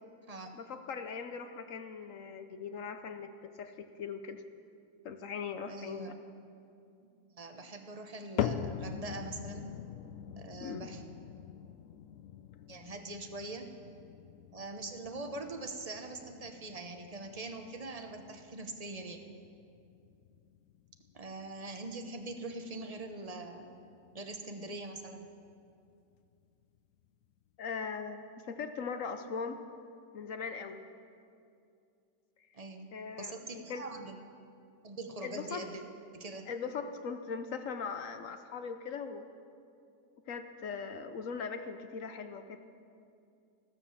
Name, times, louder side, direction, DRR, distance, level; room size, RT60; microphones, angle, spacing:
voice 1, 0.5-4.4 5.0-6.1 10.6-10.9 27.6-29.6 30.1-30.8 32.9-33.9 35.2-35.7 36.5-39.3 40.3-42.6, left 5 dB, 60° left, 9 dB, 0.9 m, -40 dB
voice 2, 5.7-6.1 7.4-9.7 10.4-11.0 12.7-13.7 14.5-19.2 21.1-23.8 24.1-25.3 32.5-32.9 33.2-34.2 34.8-35.8 36.1-36.5, right 2 dB, 30° right, 5 dB, 0.7 m, -43 dB
sound 1, 8.4-24.7 25.0-25.5 26.1-26.2 27.0-27.1, left 9 dB, 90° left, 0.7 m, -43 dB
14.0 x 13.0 x 7.2 m, 2.5 s
omnidirectional pair, 1.9 m